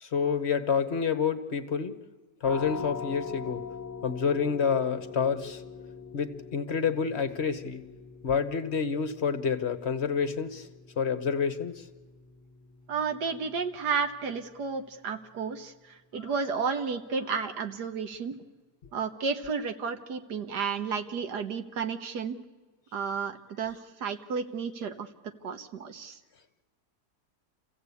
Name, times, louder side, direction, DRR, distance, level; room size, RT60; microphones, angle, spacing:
voice 1, 0.0-2.0 2.4-3.7 4.0-5.6 6.1-7.8 8.2-10.7 11.0-11.8, left 6 dB, 45° left, 10 dB, 1.2 m, -28 dB
sound 1, 2.4-13.9, left 6 dB, 15° left, 0.7 m, -43 dB
voice 2, 12.9-18.4 18.9-22.4 22.9-25.1 25.4-26.2, right 5 dB, 80° right, 8 dB, 1.8 m, -32 dB
28.0 x 15.5 x 8.4 m, 1.3 s
omnidirectional pair, 1.7 m